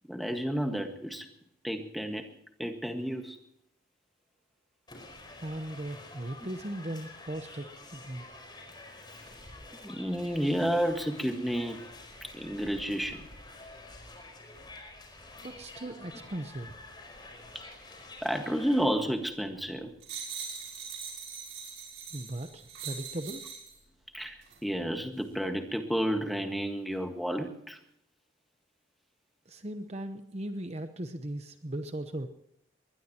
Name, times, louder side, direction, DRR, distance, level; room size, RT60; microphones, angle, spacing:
voice 1, 0.1-1.3 1.6-2.3 2.6-3.4 9.8-11.8 12.2-13.3 18.2-19.9 24.1-27.8, equal, ahead, 4 dB, 1.6 m, -31 dB
sound 1, 4.9-18.8, left 2 dB, 20° left, 4.9 m, -48 dB
voice 2, 5.4-8.3 15.4-16.8 22.1-23.4 29.5-32.3, right 1 dB, 30° right, 8 dB, 0.9 m, -38 dB
sound 2, 20.0-23.8 24.4-24.6, right 6 dB, 75° right, 6.5 m, -41 dB
21.5 x 20.5 x 3.0 m, 0.75 s
head